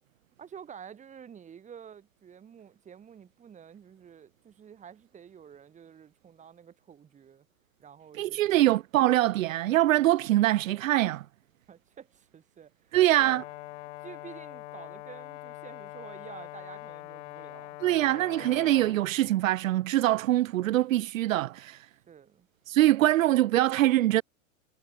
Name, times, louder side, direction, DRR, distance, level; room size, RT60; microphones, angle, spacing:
voice 1, 0.4-7.5 7.8-8.6 11.7-13.4 14.0-17.8 22.1-22.5, right 8 dB, 15° right, 6.7 m, -49 dB
voice 2, 8.1-11.2 12.9-13.4 17.8-21.9 22.7-24.2, right 15 dB, 65° right, 1.5 m, -24 dB
Brass instrument, 13.1-19.0, left 18 dB, 55° left, 2.4 m, -43 dB
supercardioid pair, 150°, 42 cm